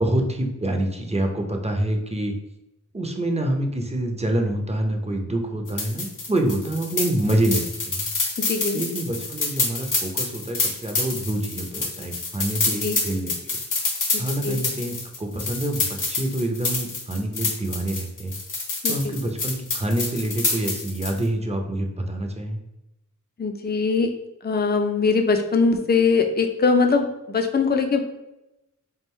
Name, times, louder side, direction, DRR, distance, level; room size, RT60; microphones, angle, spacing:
voice 1, 0.0-2.3 2.9-8.1 8.7-13.5 14.2-18.3 18.9-22.6, right 1 dB, 20° right, 3 dB, 0.6 m, -26 dB
sound 1, 5.7-21.2, left 3 dB, 70° left, 1.0 m, -27 dB
voice 2, 8.5-8.8 12.8-13.0 14.1-14.6 18.8-19.3 23.4-24.1 24.4-28.0, left 4 dB, 30° left, 5 dB, 0.5 m, -22 dB
3.6 x 2.4 x 4.3 m, 0.94 s
wide cardioid pair, 70°, 32 cm